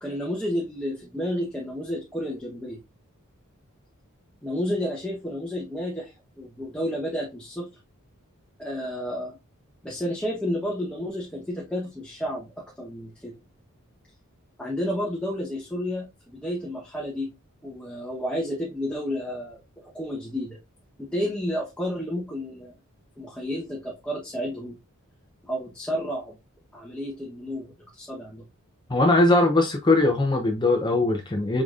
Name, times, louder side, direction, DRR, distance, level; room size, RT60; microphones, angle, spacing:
voice 1, 0.0-2.8 4.4-7.7 8.6-9.4 9.8-13.4 14.6-17.3 17.6-19.6 19.9-20.6 21.0-22.7 23.2-24.8 25.4-26.3 26.7-28.4, equal, 5° left, 0.9 m, -31 dB
voice 2, 28.9-31.6, left 2 dB, 20° left, 0.6 m, -20 dB
4.9 x 3.9 x 2.4 m
head